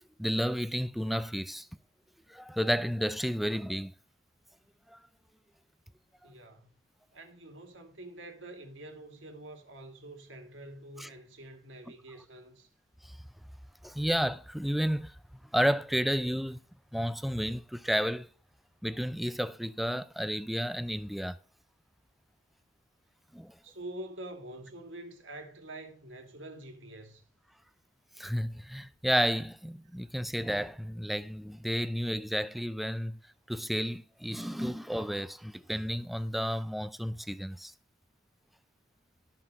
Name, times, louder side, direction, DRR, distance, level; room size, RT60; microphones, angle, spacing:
voice 1, 0.2-1.7 2.3-3.9 4.9-5.0 11.0-11.1 13.0-13.2 13.8-15.2 15.5-16.6 16.9-18.3 18.8-21.4 23.3-23.6 28.2-33.2 33.5-37.7, equal, ahead, 0.4 m, -31 dB
voice 2, 6.2-6.7 7.1-12.7 23.6-27.2, right 1 dB, 75° right, 2.4 m, -46 dB
13.0 x 5.8 x 5.5 m
head